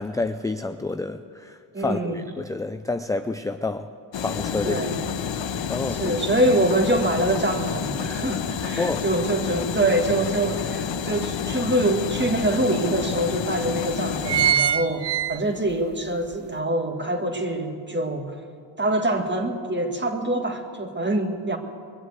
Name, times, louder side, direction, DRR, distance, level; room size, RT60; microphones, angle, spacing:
voice 1, 0.0-3.9 4.2-4.9 5.7-6.2 8.8-9.0, left 3 dB, 10° left, 8 dB, 0.4 m, -29 dB
voice 2, 1.7-2.2 4.6-5.0 5.9-18.4 18.8-21.6, right 1 dB, 25° right, 4 dB, 1.8 m, -25 dB
sound 1, 4.1-14.5, left 7 dB, 70° left, 1.0 m, -29 dB
sound 2, 10.0-10.1 10.6-11.8 12.4-12.5 12.8-12.9 13.5-13.7 14.0-15.8 16.2-16.3, right 9 dB, 60° right, 0.5 m, -23 dB
22.0 x 7.9 x 8.1 m, 2.2 s
cardioid pair, 90°, 46 cm